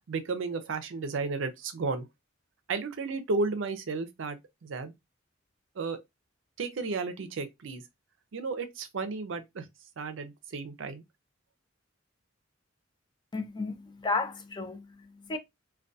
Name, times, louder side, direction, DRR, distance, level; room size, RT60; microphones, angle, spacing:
voice 1, 0.1-2.1 2.7-4.9 5.8-6.0 6.6-7.8 8.3-9.7 10.0-11.0, right 4 dB, 65° right, 0.5 m, -33 dB
voice 2, 13.3-15.4, left 3 dB, 20° left, 0.4 m, -33 dB
2.2 x 2.2 x 2.6 m
head